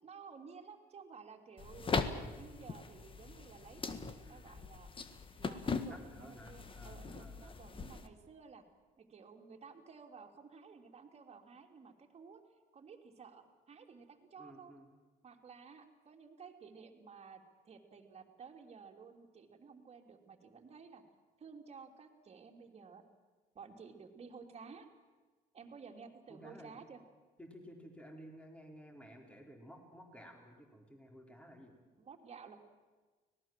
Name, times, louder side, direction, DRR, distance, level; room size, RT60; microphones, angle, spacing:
voice 1, 0.0-4.9 5.4-8.6 9.0-12.4 12.7-14.7 15.2-21.0 21.4-23.0 23.5-24.9 25.5-27.0 32.0-32.6, right 5 dB, 40° right, 4 dB, 3.1 m, -54 dB
sound 1, 1.6-8.1, left 4 dB, 30° left, 1.7 m, -40 dB
voice 2, 5.9-7.6 14.4-14.9 26.3-26.8 27.4-31.7, equal, 5° left, 2 dB, 4.2 m, -54 dB
25.0 x 18.5 x 7.6 m, 1.3 s
cardioid pair, 110°, 17 cm